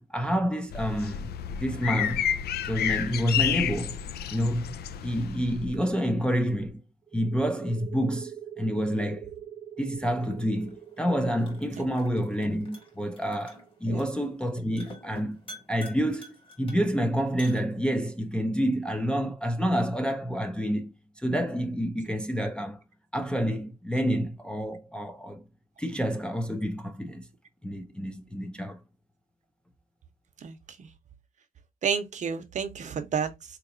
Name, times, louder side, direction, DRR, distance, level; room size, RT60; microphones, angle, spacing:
voice 1, 0.0-1.3 1.6-2.3 2.6-4.0 4.3-4.8 5.0-6.8 7.1-8.3 8.6-9.3 9.8-15.4 15.7-20.9 21.2-22.8 23.1-25.4 25.8-27.3 27.6-28.8, equal, 5° left, 0.4 m, -28 dB
sound 1, 0.7-5.8, left 9 dB, 90° left, 0.4 m, -30 dB
sound 2, 7.1-14.5, right 10 dB, 15° right, 0.8 m, -44 dB
sound 3, 10.1-18.2, left 1 dB, 35° left, 1.4 m, -50 dB
voice 2, 30.4-30.9 31.8-33.3, right 6 dB, 50° right, 0.7 m, -31 dB
4.0 x 2.9 x 2.5 m
wide cardioid pair, 170°, 16 cm